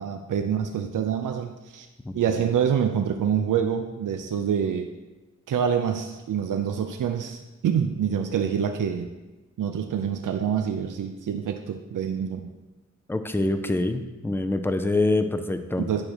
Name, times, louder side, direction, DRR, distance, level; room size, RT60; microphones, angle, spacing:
voice 1, 0.0-1.9 2.1-4.9 5.5-9.1 9.6-12.5 15.8-16.1, right 8 dB, 90° right, 6 dB, 0.5 m, -26 dB
voice 2, 13.1-15.9, left 2 dB, 10° left, 9 dB, 0.4 m, -25 dB
8.7 x 6.3 x 3.0 m, 1.1 s
wide cardioid pair, 130°, 31 cm